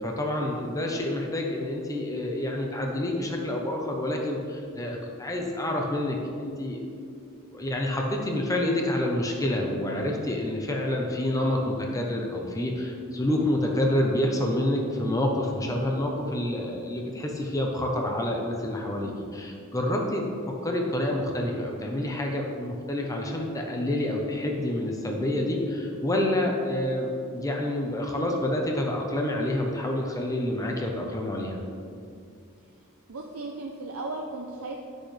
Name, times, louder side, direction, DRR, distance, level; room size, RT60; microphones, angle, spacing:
voice 1, 0.0-6.8 7.5-31.6, left 1 dB, 15° left, 1 dB, 0.8 m, -28 dB
voice 2, 33.1-34.8, right 2 dB, 75° right, 0 dB, 0.6 m, -35 dB
10.5 x 6.3 x 3.3 m, 2.4 s
head